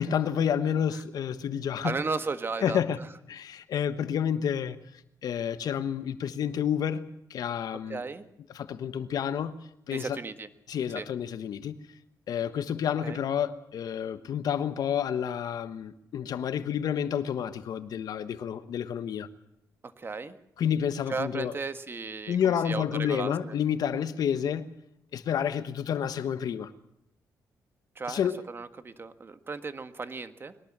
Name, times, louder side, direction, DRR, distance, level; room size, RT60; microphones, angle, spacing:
voice 1, 0.0-2.0 2.6-3.0 3.3-4.8 5.2-8.0 8.5-9.6 9.9-10.2 10.7-11.8 12.3-19.3 20.6-21.5 22.3-24.7 25.1-26.7 28.1-28.4, left 8 dB, 75° left, 1.3 m, -29 dB
voice 2, 1.8-3.0 7.9-8.2 9.9-10.5 10.9-11.0 13.0-13.2 20.0-20.4 21.1-23.5 27.9-30.5, right 4 dB, 35° right, 1.6 m, -35 dB
22.0 x 19.0 x 7.5 m
cardioid pair, 90°, 7 cm